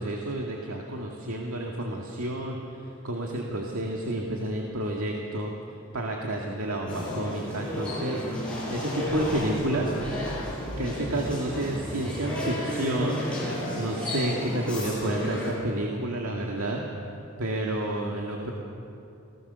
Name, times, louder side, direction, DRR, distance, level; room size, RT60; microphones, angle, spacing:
voice 1, 0.0-5.5 5.9-8.3 8.7-9.9 10.8-13.2 13.7-16.8 17.4-18.5, right 1 dB, 85° right, 0 dB, 2.1 m, -30 dB
sound 1, 6.9-15.5, left 1 dB, 5° left, 6.9 m, -33 dB
sound 2, 9.1-15.5, equal, 30° right, 4.7 m, -39 dB
27.5 x 18.0 x 6.9 m, 2.7 s
head